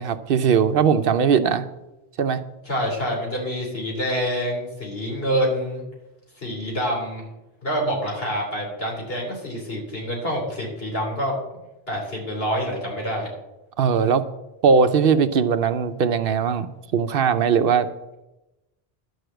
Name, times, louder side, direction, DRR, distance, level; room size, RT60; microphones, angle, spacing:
voice 1, 0.0-1.6 2.2-2.4 13.8-14.2 14.6-17.9, right 6 dB, 65° right, 11 dB, 0.8 m, -19 dB
voice 2, 2.7-5.8 6.4-7.2 7.6-11.3 11.9-13.3, equal, 70° left, -1 dB, 3.6 m, -26 dB
11.0 x 6.6 x 7.8 m, 0.97 s
omnidirectional pair, 1.1 m